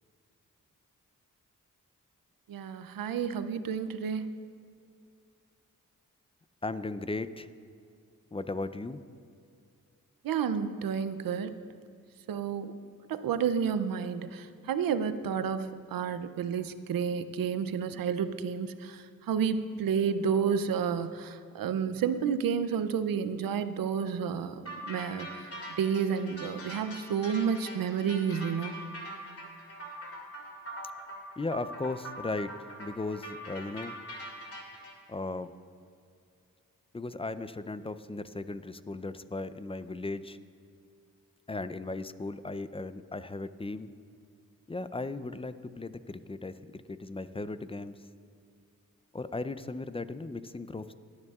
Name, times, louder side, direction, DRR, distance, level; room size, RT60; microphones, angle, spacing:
voice 1, 2.5-4.2 10.2-11.5 12.3-12.7 13.1-28.8, right 7 dB, 90° right, 12 dB, 0.5 m, -31 dB
voice 2, 6.6-7.5 8.3-9.0 31.4-32.5 32.8-34.0 35.1-35.5 36.9-40.4 41.5-43.9 44.7-48.0 49.1-50.9, left 2 dB, 15° left, 13 dB, 0.5 m, -36 dB
sound 1, 24.6-34.9, right 1 dB, 45° left, 2.4 m, -43 dB
18.0 x 9.7 x 2.4 m, 2.4 s
cardioid pair, 45°, 33 cm